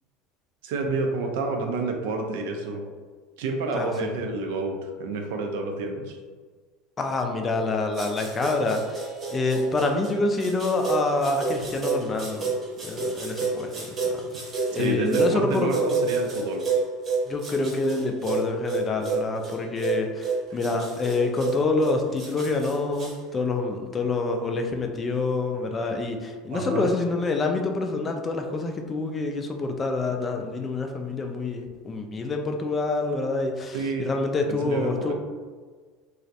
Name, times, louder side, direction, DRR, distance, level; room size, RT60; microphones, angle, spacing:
voice 1, 0.6-2.8 3.4-6.2 14.7-16.6 26.5-26.9 33.7-34.1 34.5-35.1, right 3 dB, 75° right, 3 dB, 0.3 m, -29 dB
voice 2, 3.7-4.1 7.0-12.6 12.8-14.2 14.7-15.7 17.3-35.1, left 3 dB, 30° left, 4 dB, 0.3 m, -27 dB
sound 1, 7.9-23.1, right 4 dB, 40° right, 0.8 m, -30 dB
2.3 x 2.0 x 2.7 m, 1.5 s
hypercardioid pair, 85°, 0 cm